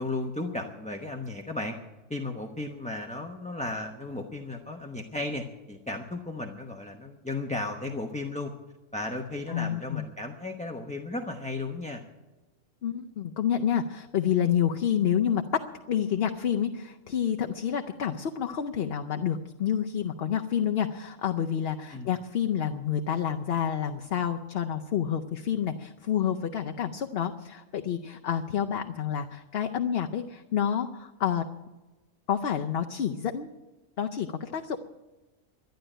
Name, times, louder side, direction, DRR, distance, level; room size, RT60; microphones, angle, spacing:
voice 1, 0.0-1.8 2.1-8.5 8.9-12.0 21.9-22.1, left 2 dB, 5° left, 3 dB, 0.8 m, -35 dB
voice 2, 9.5-10.0 12.8-15.6 15.9-31.4 32.3-33.5 34.0-34.8, left 9 dB, 55° left, 4 dB, 0.8 m, -28 dB
12.5 x 10.5 x 9.0 m, 1.1 s
omnidirectional pair, 1.4 m